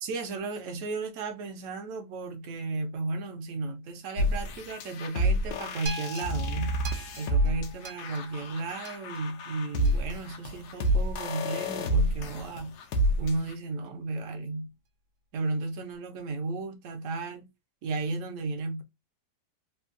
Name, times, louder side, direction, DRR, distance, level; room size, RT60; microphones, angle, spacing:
voice 1, 0.0-6.8 7.2-12.8 13.2-14.7 15.3-17.5 17.8-18.8, right 3 dB, 65° right, 0.8 m, -34 dB
sound 1, 4.2-13.5, equal, 75° left, 1.1 m, -29 dB
sound 2, 5.9-10.2 10.9-11.0, right 2 dB, 90° right, 1.3 m, -43 dB
3.4 x 2.2 x 2.5 m
omnidirectional pair, 1.9 m